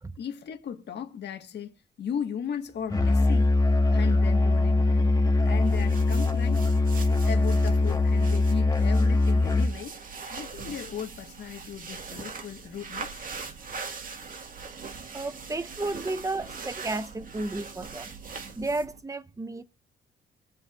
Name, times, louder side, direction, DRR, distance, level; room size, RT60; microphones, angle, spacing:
voice 1, 0.2-1.7 2.0-3.6 3.9-5.1 5.4-6.7 7.2-9.9 10.3-13.2, left 8 dB, 60° left, 1.6 m, -36 dB
Musical instrument, 2.9-9.8, left 2 dB, 20° left, 1.6 m, -22 dB
sound 1, 5.4-19.0, right 5 dB, 45° right, 1.9 m, -41 dB
voice 2, 15.1-18.1 18.5-19.6, right 2 dB, 15° right, 0.8 m, -33 dB
23.0 x 7.6 x 2.5 m
cardioid pair, 90°, 20 cm